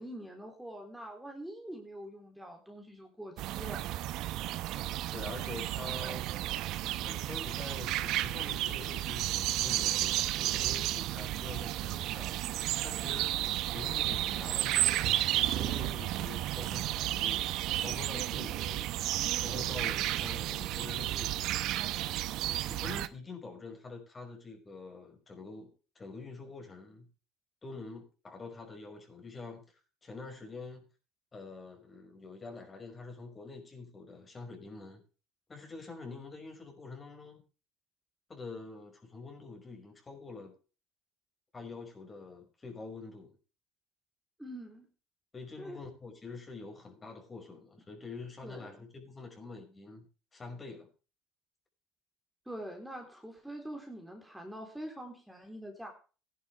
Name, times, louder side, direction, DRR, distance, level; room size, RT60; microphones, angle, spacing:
voice 1, 0.0-3.8 44.4-44.9 45.6-45.8 48.4-48.9 52.5-55.9, right 1 dB, 5° right, 3.7 m, -44 dB
sound 1, 3.4-23.1, right 14 dB, 65° right, 0.8 m, -32 dB
voice 2, 5.1-6.3 7.0-12.4 12.8-13.3 13.7-17.5 17.8-18.9 19.4-21.6 22.7-27.1 27.6-30.8 31.3-35.0 35.5-37.4 38.3-40.5 41.5-43.4 45.3-50.9, left 3 dB, 30° left, 5.6 m, -46 dB
16.0 x 11.0 x 3.4 m
hypercardioid pair, 70°, 0 cm